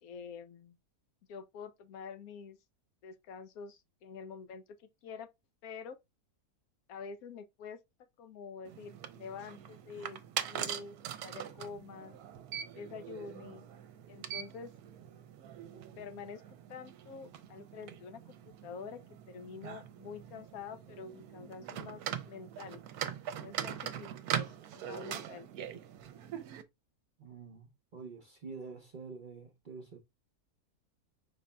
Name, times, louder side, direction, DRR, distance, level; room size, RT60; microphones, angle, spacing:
voice 1, 0.0-0.8 1.3-2.6 3.0-5.3 5.6-6.0 6.9-7.8 8.2-10.2 10.4-11.0 11.2-12.2 12.7-13.7 14.1-14.7 15.7-19.0 19.3-22.8 23.4-25.5, left 5 dB, 75° left, 1.0 m, -47 dB
sound 1, 8.6-26.6, right 9 dB, 80° right, 1.1 m, -42 dB
voice 2, 27.2-30.0, right 4 dB, 40° right, 0.7 m, -47 dB
5.2 x 3.7 x 2.2 m
omnidirectional pair, 1.6 m